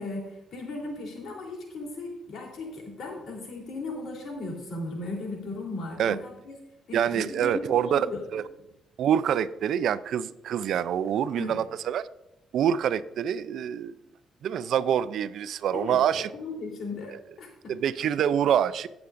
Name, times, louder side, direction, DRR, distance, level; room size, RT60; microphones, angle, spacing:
voice 1, 0.0-6.6 6.9-8.2 11.4-11.5 15.7-17.7, left 2 dB, 65° left, -1 dB, 3.5 m, -37 dB
voice 2, 6.9-8.1 8.3-8.4 9.0-12.1 12.5-14.0 14.4-16.3 17.1-17.2 17.7-18.9, right 9 dB, 70° right, 13 dB, 0.4 m, -26 dB
18.0 x 6.9 x 2.6 m, 0.85 s
cardioid pair, 90°, 0 cm